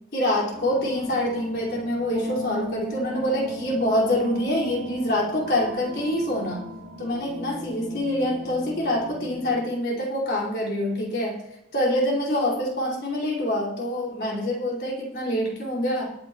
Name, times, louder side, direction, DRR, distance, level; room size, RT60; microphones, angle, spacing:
voice 1, 0.1-6.6 7.0-11.4 11.7-16.1, left 1 dB, 50° left, -4 dB, 4.7 m, -25 dB
sound 1, 0.5-9.6, equal, 80° right, 3.2 m, -38 dB
22.0 x 9.5 x 3.1 m, 0.81 s
head